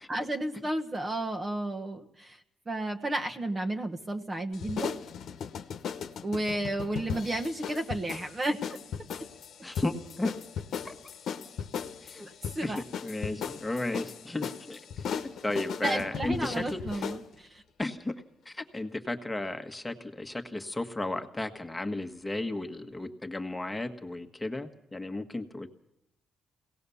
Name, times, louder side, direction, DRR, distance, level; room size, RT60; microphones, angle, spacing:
voice 1, 0.1-2.4 2.7-5.0 6.2-8.8 12.2-12.8 15.8-17.6, right 1 dB, 25° right, 4 dB, 1.2 m, -32 dB
sound 1, 4.5-17.2, left 7 dB, 70° left, 1.1 m, -37 dB
voice 2, 9.6-10.3 10.8-11.0 12.0-12.3 12.6-17.1 17.8-18.1 18.4-25.7, left 2 dB, 15° left, 7 dB, 1.5 m, -34 dB
22.0 x 18.0 x 7.0 m, 0.83 s
cardioid pair, 90°, 0 cm